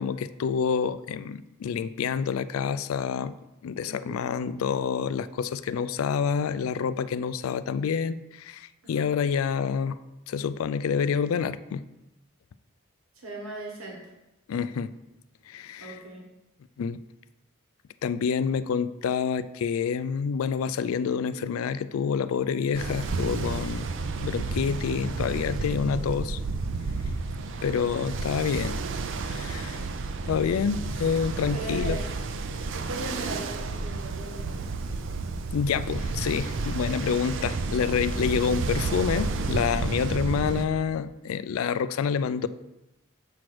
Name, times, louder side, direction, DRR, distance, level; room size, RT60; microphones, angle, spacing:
voice 1, 0.0-3.4 3.6-10.0 10.3-11.9 14.5-14.9 15.5-16.0 16.8-17.0 18.0-23.9 24.2-26.4 27.6-28.8 29.2-29.8 30.3-32.0 35.5-42.5, left 6 dB, 85° left, 14 dB, 0.3 m, -28 dB
voice 2, 3.9-4.2 8.8-9.1 13.2-14.0 15.8-16.2 27.6-27.8 31.4-32.0 32.7-34.7, right 2 dB, 90° right, -1 dB, 1.4 m, -38 dB
Ocean, 22.7-40.7, right 3 dB, 65° right, 0.5 m, -31 dB
7.3 x 3.2 x 6.0 m, 0.97 s
head